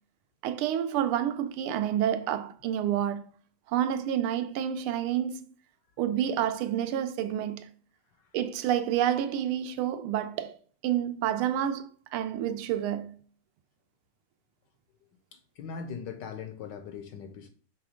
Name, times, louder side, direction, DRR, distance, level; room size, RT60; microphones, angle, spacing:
voice 1, 0.4-3.3 3.7-5.4 6.0-7.7 8.3-10.6 10.8-13.2, right 10 dB, 85° right, 1.5 m, -29 dB
voice 2, 15.3-17.5, left 6 dB, 75° left, 1.1 m, -40 dB
6.2 x 3.3 x 4.9 m
omnidirectional pair, 2.3 m